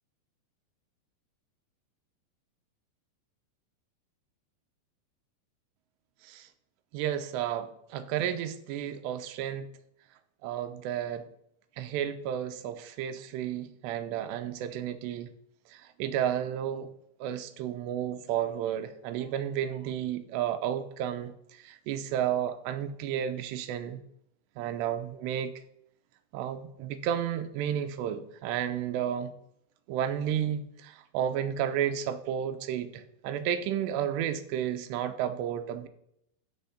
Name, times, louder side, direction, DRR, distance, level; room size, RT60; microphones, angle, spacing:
voice 1, 6.9-9.7 10.4-11.2 11.8-15.3 15.7-16.9 17.2-24.0 24.6-25.5 26.3-29.3 29.9-35.9, right 10 dB, 85° right, 9 dB, 2.9 m, -32 dB
13.0 x 4.4 x 5.7 m, 0.74 s
omnidirectional pair, 4.9 m